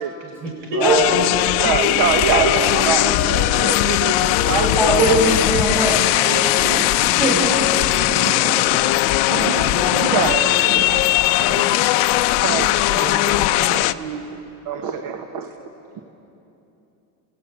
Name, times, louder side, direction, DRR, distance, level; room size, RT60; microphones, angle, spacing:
voice 1, 0.2-1.2 1.8-2.0 2.3-2.7 2.9-3.2 3.5-3.6 5.8-6.9 7.6-8.2 10.1-10.5, right 1 dB, 70° right, -2 dB, 6.8 m, -30 dB
sound 1, 0.8-13.9, left 17 dB, 70° left, 0.6 m, -19 dB
voice 2, 0.8-5.0 6.6-6.9 8.1-9.0 9.3-14.3 14.6-15.5, right 7 dB, 50° right, 6 dB, 1.2 m, -26 dB
voice 3, 2.2-2.8 4.5-6.0 7.0-7.7 12.9-13.6, right 2 dB, 5° right, 0 dB, 2.8 m, -22 dB
29.0 x 17.0 x 5.7 m, 3.0 s
supercardioid pair, 135°, 44 cm